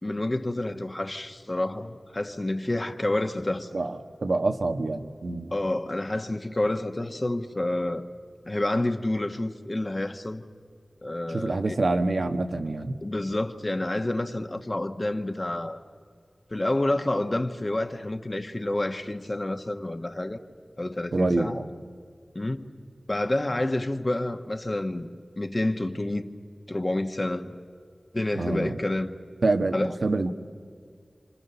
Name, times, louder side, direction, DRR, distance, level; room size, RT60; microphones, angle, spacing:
voice 1, 0.0-3.7 5.5-8.1 8.4-10.4 11.0-11.8 13.0-15.8 16.5-20.4 20.8-21.6 22.3-22.7 23.1-25.1 25.4-26.3 26.7-27.5 28.1-29.2 29.7-29.9, left 1 dB, 35° left, 1.3 m, -29 dB
voice 2, 3.7-5.5 11.3-13.0 21.1-21.7 28.3-28.8 29.4-30.3, right 2 dB, 80° right, 1.3 m, -26 dB
29.0 x 26.5 x 6.9 m
wide cardioid pair, 80°, 0 cm